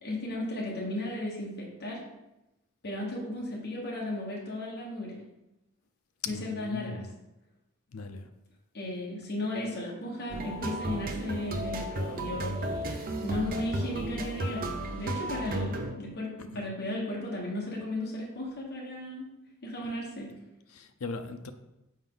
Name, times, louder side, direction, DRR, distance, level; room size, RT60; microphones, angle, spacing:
voice 1, 0.0-2.0 2.8-5.2 6.3-7.1 8.7-19.3 19.6-20.3, left 1 dB, 50° left, -4 dB, 1.4 m, -35 dB
voice 2, 6.2-7.1 7.9-8.3 16.4-16.7 20.7-21.5, left 4 dB, 70° left, 8 dB, 0.6 m, -39 dB
sound 1, 10.3-15.9, right 1 dB, 40° right, 0.7 m, -34 dB
7.2 x 4.9 x 3.9 m, 0.94 s
head